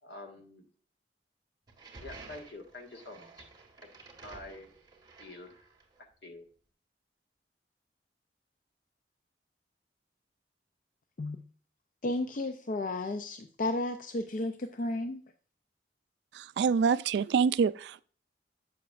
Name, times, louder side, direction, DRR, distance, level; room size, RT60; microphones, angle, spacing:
voice 1, 0.0-0.7 2.0-3.4 4.2-4.7 5.2-5.5 6.2-6.4, left 2 dB, 70° left, 1.6 m, -46 dB
sound 1, 1.7-6.0, right 3 dB, 25° right, 1.7 m, -52 dB
voice 2, 12.0-15.2, left 2 dB, 50° left, 0.4 m, -33 dB
voice 3, 16.3-18.0, right 6 dB, 75° right, 0.3 m, -26 dB
8.4 x 6.9 x 2.5 m
head